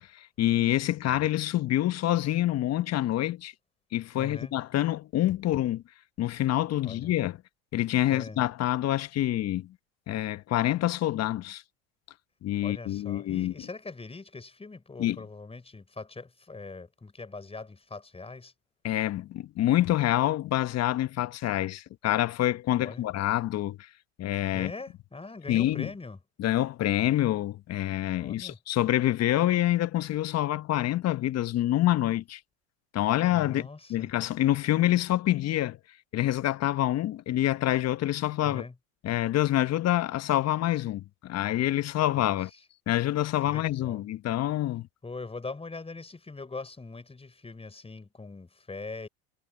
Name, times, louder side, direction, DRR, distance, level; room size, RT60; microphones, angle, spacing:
voice 1, 0.0-3.5 3.9-5.8 6.2-7.4 7.7-9.7 10.1-11.6 12.4-13.5 15.0-15.2 18.8-23.8 24.2-24.7 25.5-25.9 26.4-32.4 32.9-35.8 36.1-38.6 39.0-42.5 42.9-44.9, left 14 dB, 45° left, 1.2 m, -27 dB
voice 2, 4.2-4.5 6.9-7.1 8.1-8.4 12.6-18.5 22.8-23.1 24.5-26.2 28.2-28.6 33.3-34.1 38.4-38.7 42.1-42.4 43.4-44.1 45.0-49.1, left 3 dB, 15° left, 5.5 m, -42 dB
hypercardioid pair, 85°, 36 cm